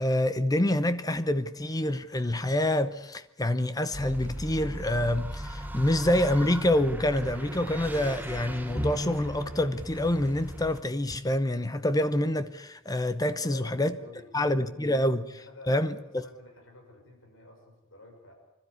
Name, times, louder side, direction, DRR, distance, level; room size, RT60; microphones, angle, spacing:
voice 1, 0.0-13.9 14.3-15.2 15.7-16.2, left 1 dB, 20° left, 0.8 m, -27 dB
sound 1, 3.9-10.8, equal, 10° right, 1.0 m, -36 dB
voice 2, 13.2-15.1 15.4-18.3, left 1 dB, 80° left, 5.9 m, -50 dB
25.0 x 13.0 x 9.6 m
head